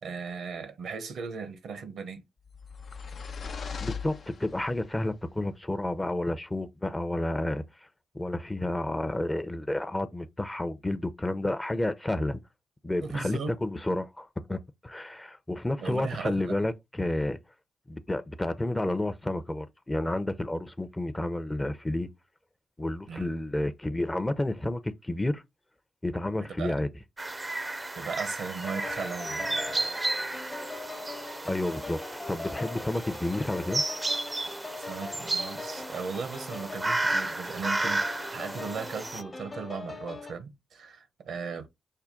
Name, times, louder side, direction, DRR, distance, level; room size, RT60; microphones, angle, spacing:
voice 1, 0.0-2.2 13.0-13.5 15.8-16.6 23.1-23.3 26.4-26.8 27.9-29.8 34.8-41.7, right 5 dB, 70° right, 0.8 m, -37 dB
sound 1, 2.5-4.9, left 6 dB, 60° left, 0.5 m, -39 dB
voice 2, 3.8-7.6 8.1-12.4 12.8-17.4 17.9-22.1 22.8-25.4 26.0-26.9 31.4-33.8, left 1 dB, 20° left, 0.6 m, -30 dB
sound 2, 27.2-39.2, right 2 dB, 25° right, 0.5 m, -33 dB
sound 3, 28.6-40.3, left 3 dB, 35° left, 0.9 m, -41 dB
5.5 x 2.2 x 3.7 m
supercardioid pair, 45°, 0 cm